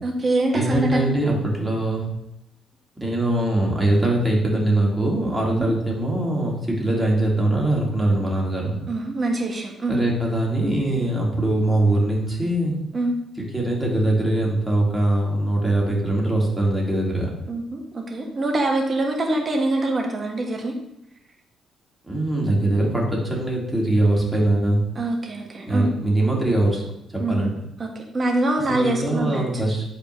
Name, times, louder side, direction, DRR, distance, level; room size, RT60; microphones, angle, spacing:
voice 1, 0.0-1.1 5.5-5.7 8.9-10.0 12.9-13.1 17.5-20.7 24.9-25.9 27.2-29.6, right 2 dB, 35° right, 1 dB, 1.6 m, -24 dB
voice 2, 0.5-2.0 3.0-8.8 9.9-12.7 13.5-17.3 22.0-24.8 25.7-26.8 27.1-27.5 28.7-29.8, right 1 dB, 10° right, -3 dB, 2.4 m, -22 dB
10.5 x 4.4 x 3.2 m, 0.82 s
cardioid pair, 80°, 0 cm